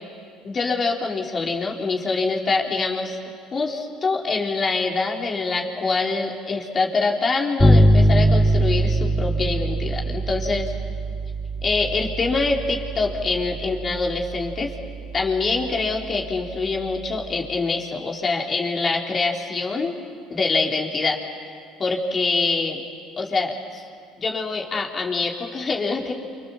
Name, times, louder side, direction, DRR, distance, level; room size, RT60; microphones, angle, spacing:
voice 1, 0.4-3.2 3.5-10.7 11.6-14.7 15.1-20.0 20.3-21.2 21.8-22.8 23.2-23.8 24.2-26.1, left 3 dB, 35° left, 0 dB, 4.2 m, -25 dB
Bass guitar, 7.6-17.3, right 1 dB, 15° left, 4.8 m, -23 dB
29.0 x 26.0 x 7.5 m, 2.4 s
supercardioid pair, 80°, 0 cm